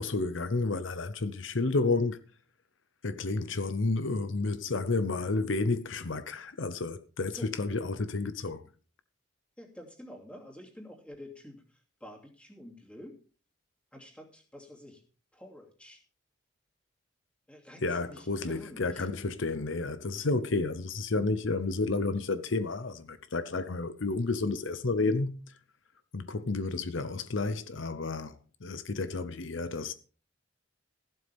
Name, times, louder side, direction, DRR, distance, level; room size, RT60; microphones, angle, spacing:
voice 1, 0.0-2.2 3.0-8.6 17.8-25.3 26.1-29.9, left 3 dB, 70° left, 0.8 m, -31 dB
voice 2, 9.6-13.2 13.9-15.0 15.3-16.0 17.5-19.1, left 1 dB, 5° left, 2.8 m, -49 dB
15.0 x 12.0 x 3.5 m
head